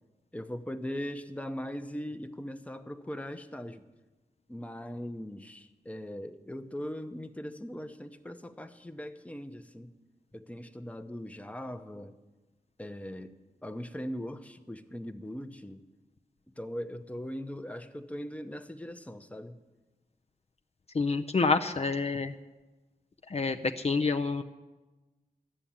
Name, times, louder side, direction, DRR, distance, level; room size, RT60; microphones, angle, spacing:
voice 1, 0.3-3.8 4.5-9.9 10.3-12.1 12.8-13.3 13.6-15.8 16.6-19.6, equal, 10° left, 8 dB, 0.8 m, -40 dB
voice 2, 20.9-22.3 23.3-24.4, left 4 dB, 45° left, 5 dB, 0.5 m, -28 dB
12.5 x 7.1 x 8.7 m, 1.2 s
wide cardioid pair, 65°, 15 cm